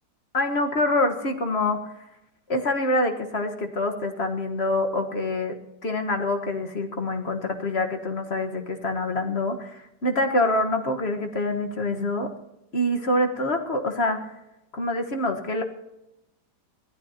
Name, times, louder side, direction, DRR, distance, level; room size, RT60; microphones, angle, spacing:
voice 1, 0.3-1.8 2.5-5.5 5.8-12.3 12.7-14.3 14.7-15.6, left 2 dB, 40° left, 6 dB, 1.5 m, -25 dB
22.5 x 15.5 x 2.9 m, 0.91 s
omnidirectional pair, 1.9 m